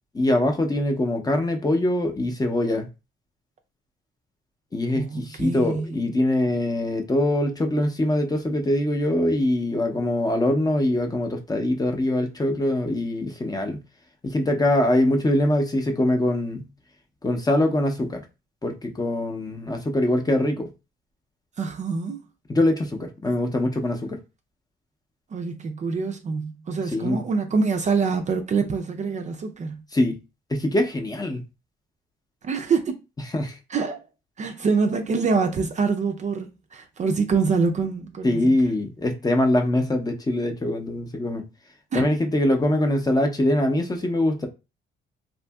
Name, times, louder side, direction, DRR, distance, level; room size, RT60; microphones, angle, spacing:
voice 1, 0.1-2.9 4.7-13.8 14.2-16.6 17.2-18.2 18.6-20.7 22.5-24.2 26.9-27.2 29.9-30.2 30.5-31.4 33.3-33.6 38.2-41.4 41.9-44.5, left 1 dB, 20° left, 0.6 m, -23 dB
voice 2, 4.9-6.0 21.6-22.2 25.3-29.8 32.4-33.0 33.7-34.0 34.4-38.5 41.9-42.0, right 4 dB, 35° right, 0.4 m, -25 dB
2.7 x 2.5 x 2.3 m
cardioid pair, 90°, 20 cm